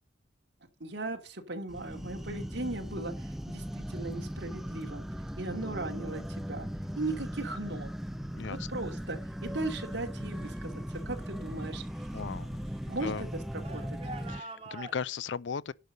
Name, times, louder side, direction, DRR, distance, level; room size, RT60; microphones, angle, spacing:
voice 1, 0.8-5.0 5.4-6.7 7.0-7.9 8.7-12.1 12.9-13.3 13.5-14.0, right 2 dB, 65° right, 2.6 m, -38 dB
sound 1, 1.7-14.4, equal, ahead, 0.5 m, -38 dB
sound 2, 1.7-2.4 3.6-3.9 4.5-4.9 5.5-6.0 6.3-10.6 10.9-15.0, right 2 dB, 30° right, 2.5 m, -51 dB
voice 2, 12.1-13.3 14.0-15.7, left 6 dB, 65° left, 0.5 m, -37 dB
11.0 x 5.4 x 6.6 m
head